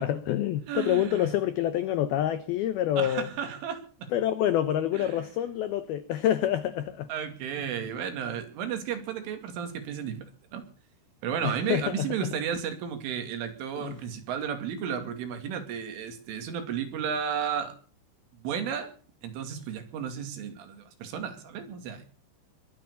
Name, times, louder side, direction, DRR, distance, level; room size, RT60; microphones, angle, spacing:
voice 1, 0.0-3.3 4.1-7.1 11.4-12.1 13.8-14.0, left 11 dB, 90° left, 2.1 m, -27 dB
voice 2, 0.7-1.3 3.0-4.1 4.9-5.2 7.1-10.6 11.2-17.7 18.4-18.9 19.2-22.0, right 8 dB, 80° right, 4.9 m, -33 dB
22.5 x 9.2 x 6.9 m
omnidirectional pair, 5.6 m